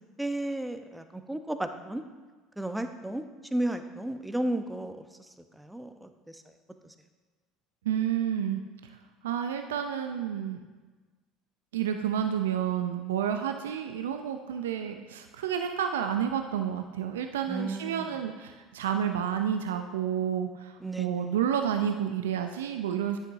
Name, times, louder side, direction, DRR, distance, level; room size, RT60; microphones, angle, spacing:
voice 1, 0.2-2.0 2.6-3.2 3.5-6.4 6.8-6.9 17.5-18.1 20.8-21.3, right 1 dB, 5° right, 7 dB, 0.8 m, -34 dB
voice 2, 7.8-8.6 9.2-10.6 11.7-23.2, right 9 dB, 80° right, 6 dB, 0.5 m, -30 dB
10.0 x 9.0 x 2.7 m, 1.3 s
hypercardioid pair, 65°, 0 cm